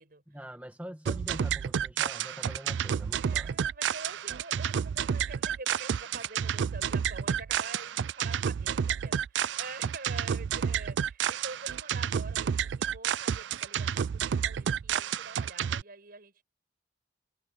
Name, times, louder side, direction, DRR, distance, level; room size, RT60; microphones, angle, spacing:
voice 1, 0.3-3.5, equal, 10° right, 1.8 m, -44 dB
sound 1, 1.0-15.8, right 8 dB, 85° right, 0.4 m, -30 dB
voice 2, 3.2-16.4, right 3 dB, 55° right, 5.6 m, -46 dB
head